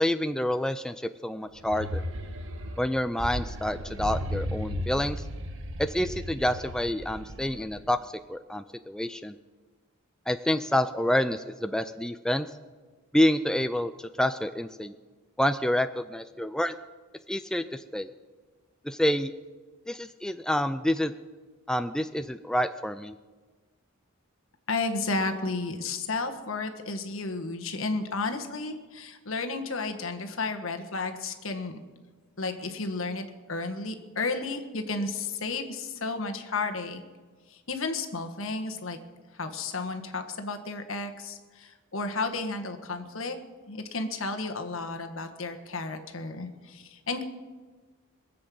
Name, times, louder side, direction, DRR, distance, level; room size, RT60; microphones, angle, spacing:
voice 1, 0.0-2.0 2.8-5.2 5.8-8.0 8.3-9.3 10.3-12.5 13.1-14.9 15.4-16.8 17.3-18.1 18.8-19.3 19.9-21.1 21.7-23.2, left 1 dB, 5° left, 10 dB, 0.3 m, -28 dB
sound 1, 1.5-7.9, equal, 65° right, 1.4 m, -35 dB
voice 2, 24.7-31.8 32.4-33.2 33.5-37.0 37.5-39.0 39.4-43.4 43.7-47.2, left 3 dB, 65° left, 5 dB, 1.5 m, -32 dB
22.0 x 7.7 x 7.7 m, 1.4 s
head